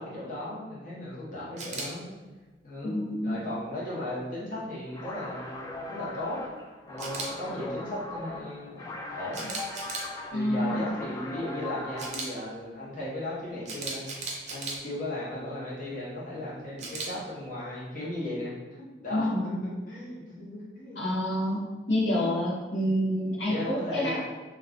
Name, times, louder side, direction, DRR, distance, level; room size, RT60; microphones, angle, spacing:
voice 1, 0.0-2.1 2.6-3.0 3.2-6.4 6.9-9.5 10.3-21.0 22.1-22.4 22.8-22.9 23.5-24.2, left 1 dB, 50° left, -7 dB, 0.8 m, -36 dB
Camera, 1.6-1.9 7.0-7.3 9.3-10.1 12.0-12.3 13.6-14.8 16.8-17.1, right 3 dB, 40° right, 0.5 m, -35 dB
voice 2, 2.8-3.4 10.3-10.9 19.1-19.6 21.0-21.6 21.9-24.2, equal, 90° left, -5 dB, 0.7 m, -28 dB
sound 1, 4.9-12.3, left 2 dB, 20° left, 0.3 m, -39 dB
2.4 x 2.3 x 3.4 m, 1.2 s
head